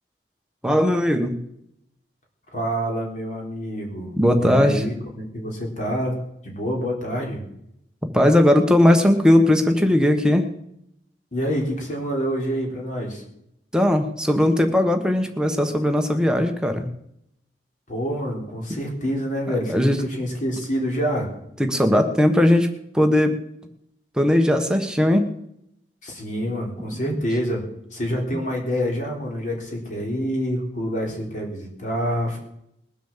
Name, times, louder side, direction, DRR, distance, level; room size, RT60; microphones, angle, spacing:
voice 1, 0.6-1.4 4.2-4.8 8.1-10.5 13.7-16.9 19.5-20.0 21.6-22.7 22.9-23.4 24.2-25.3, left 1 dB, 5° right, 5 dB, 1.2 m, -18 dB
voice 2, 2.5-7.4 11.3-13.2 17.9-21.3 26.0-27.6 27.9-32.4, equal, 45° left, -1 dB, 3.8 m, -27 dB
21.0 x 7.2 x 7.4 m, 0.78 s
head